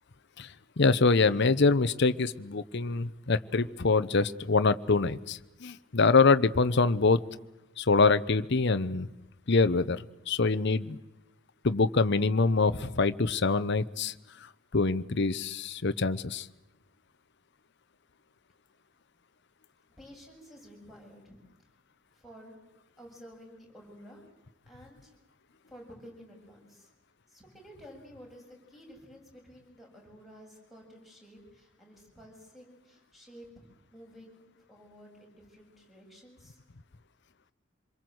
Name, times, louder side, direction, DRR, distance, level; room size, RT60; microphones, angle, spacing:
voice 1, 0.8-7.2 7.8-9.1 9.5-11.0 11.6-14.1 14.7-16.5, left 3 dB, 60° left, 11 dB, 0.9 m, -25 dB
voice 2, 20.0-21.4 22.1-22.5 23.0-24.2 24.7-25.1 25.7-26.9 27.3-33.5 33.9-36.6, equal, ahead, 0 dB, 7.7 m, -52 dB
26.5 x 23.0 x 7.9 m, 0.98 s
head